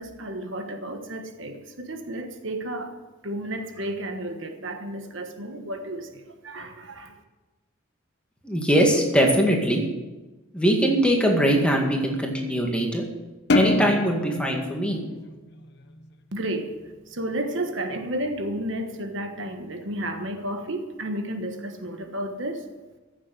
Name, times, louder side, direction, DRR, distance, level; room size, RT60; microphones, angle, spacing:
voice 1, 0.0-3.0 3.2-7.1 16.3-22.7, right 1 dB, 60° right, 1.4 m, -32 dB
voice 2, 8.4-9.8 10.5-13.1 13.5-15.0, equal, 5° left, 2.0 m, -21 dB
sound 1, 13.5-16.1, left 2 dB, 55° left, 0.9 m, -26 dB
15.5 x 7.4 x 8.3 m
head